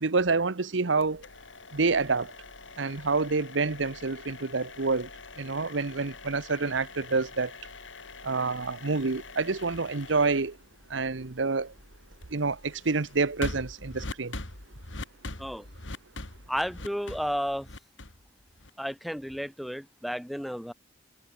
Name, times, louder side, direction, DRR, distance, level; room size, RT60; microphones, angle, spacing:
voice 1, 0.0-1.2 1.7-2.3 2.8-5.1 5.4-7.5 8.2-10.6 10.9-11.7 12.3-14.4, right 4 dB, 70° right, 1.0 m, -28 dB
sound 1, 1.0-18.9, left 2 dB, 75° left, 3.6 m, -44 dB
voice 2, 16.5-17.7 18.8-20.7, equal, ahead, 1.0 m, -32 dB
head